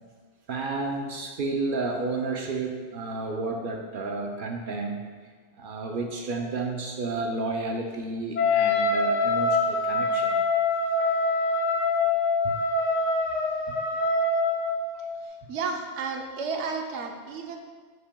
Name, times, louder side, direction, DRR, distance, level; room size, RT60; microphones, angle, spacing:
voice 1, 0.5-5.1 5.6-10.4 11.0-11.1 12.4-12.5 13.7-13.8, right 3 dB, 60° right, 2 dB, 0.6 m, -31 dB
Wind instrument woodwind instrument, 8.4-15.0, left 3 dB, 85° left, 1.2 m, -24 dB
voice 2, 15.2-17.6, right 4 dB, 80° right, 3 dB, 1.0 m, -32 dB
7.6 x 5.6 x 2.2 m, 1.5 s
omnidirectional pair, 1.2 m